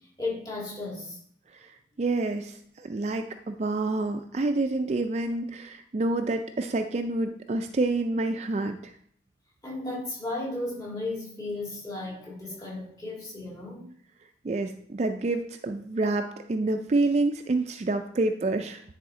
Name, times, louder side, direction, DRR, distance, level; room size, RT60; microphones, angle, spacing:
voice 1, 0.2-1.2 9.6-13.8, left 2 dB, 20° left, -4 dB, 2.2 m, -34 dB
voice 2, 2.0-8.8 14.4-18.8, right 2 dB, 35° right, 7 dB, 0.3 m, -28 dB
9.7 x 4.1 x 3.7 m, 0.64 s
head